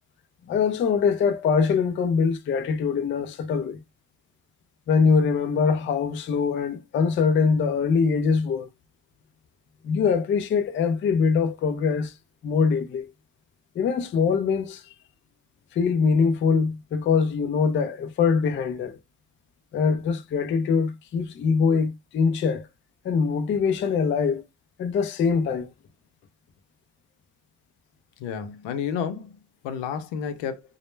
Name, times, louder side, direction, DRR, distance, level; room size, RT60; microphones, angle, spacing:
voice 1, 0.5-3.8 4.9-8.7 9.8-12.1 12.4-13.1 13.8-14.8 15.7-19.0 19.7-22.7 23.0-24.4 24.8-25.7, left 5 dB, 30° left, 0.3 m, -23 dB
voice 2, 28.2-29.3 29.6-30.6, left 7 dB, 80° left, 0.7 m, -30 dB
2.1 x 2.0 x 3.1 m
cardioid pair, 95°, 43 cm